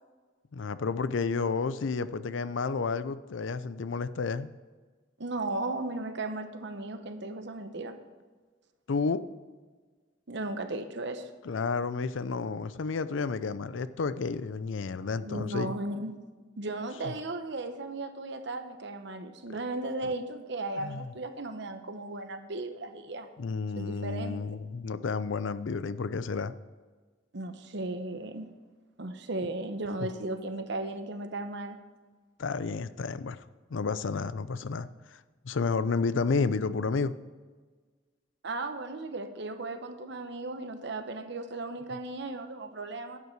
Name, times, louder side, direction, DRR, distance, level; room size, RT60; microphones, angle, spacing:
voice 1, 0.5-4.5 8.9-9.2 11.4-15.7 19.5-19.6 20.8-21.1 23.4-26.5 32.4-33.4 33.7-35.2 35.4-37.1, left 4 dB, 80° left, 14 dB, 0.5 m, -31 dB
voice 2, 5.2-8.0 10.3-11.3 15.2-16.2 16.6-23.3 23.8-24.4 27.3-28.5 29.0-31.8 38.4-43.2, right 2 dB, 65° right, 8 dB, 1.0 m, -36 dB
11.0 x 8.2 x 4.6 m, 1.4 s
head